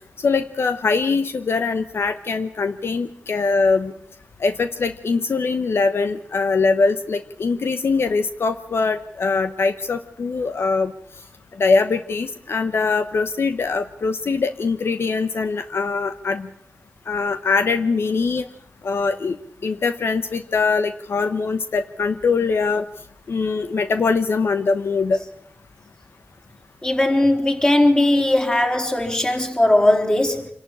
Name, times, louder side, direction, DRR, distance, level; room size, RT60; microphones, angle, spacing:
voice 1, 0.2-3.9 4.4-10.9 11.6-16.5 17.1-18.5 18.8-19.4 19.6-22.8 23.3-25.2, left 4 dB, 75° left, 10 dB, 1.0 m, -22 dB
voice 2, 26.8-30.5, left 1 dB, 20° left, 2 dB, 4.0 m, -18 dB
26.0 x 11.5 x 10.0 m, 0.69 s
wide cardioid pair, 80°, 4 cm